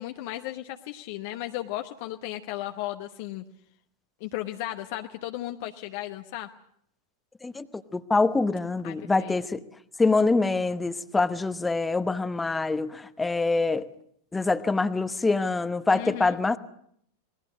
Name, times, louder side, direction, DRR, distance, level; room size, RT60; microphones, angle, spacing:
voice 1, 0.0-3.4 4.2-6.5 8.8-9.3 15.9-16.4, left 15 dB, 50° left, 6 dB, 0.9 m, -35 dB
voice 2, 7.9-9.6 10.0-13.9 14.3-16.6, left 3 dB, 10° left, 13 dB, 0.9 m, -25 dB
27.0 x 20.0 x 6.3 m, 0.69 s
figure-of-eight pair, 90°, 0 cm